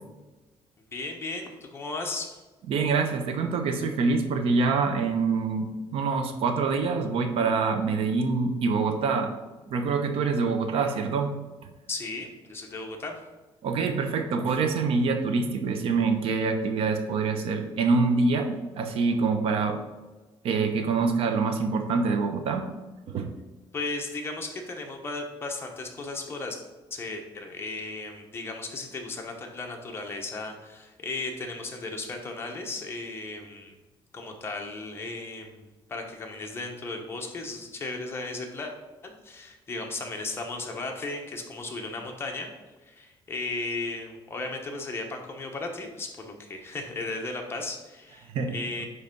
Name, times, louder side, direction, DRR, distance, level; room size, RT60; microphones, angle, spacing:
voice 1, 0.9-2.4 11.9-13.2 23.7-26.6 26.9-33.8 34.1-35.6 35.9-38.7 39.0-42.5 42.9-48.9, left 3 dB, 25° left, 1 dB, 1.2 m, -35 dB
voice 2, 2.7-9.3 9.7-11.3 13.6-19.8 20.4-22.7 23.1-23.3 48.3-48.6, right 4 dB, 75° right, 6 dB, 0.9 m, -25 dB
9.8 x 3.3 x 5.4 m, 1.2 s
cardioid pair, 150°, 10 cm